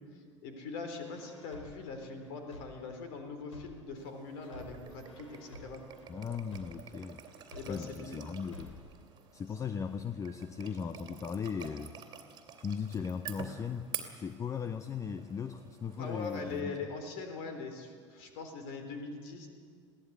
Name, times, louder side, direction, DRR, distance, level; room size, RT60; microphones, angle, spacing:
voice 1, 0.1-5.8 7.5-8.2 16.0-19.5, left 4 dB, 50° left, 6 dB, 3.7 m, -42 dB
sound 1, 1.0-4.0 4.4-8.0 8.4-9.0, left 2 dB, 80° left, 3.2 m, -52 dB
sound 2, 4.0-16.6, right 8 dB, 25° right, 2.7 m, -49 dB
voice 2, 6.1-7.2 7.7-8.7 9.3-12.0 12.6-16.8, left 6 dB, 20° left, 11 dB, 0.7 m, -38 dB
22.5 x 17.0 x 8.1 m, 2.1 s
figure-of-eight pair, 80°, 16 cm